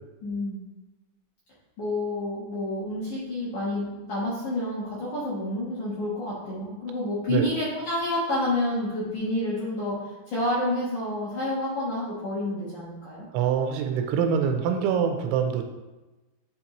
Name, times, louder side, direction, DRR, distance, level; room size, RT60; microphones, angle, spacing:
voice 1, 0.2-0.6 1.8-13.3, left 1 dB, 70° left, -8 dB, 1.9 m, -29 dB
voice 2, 13.3-15.6, right 7 dB, 90° right, 5 dB, 3.0 m, -24 dB
10.5 x 4.0 x 3.1 m, 1.1 s
omnidirectional pair, 5.4 m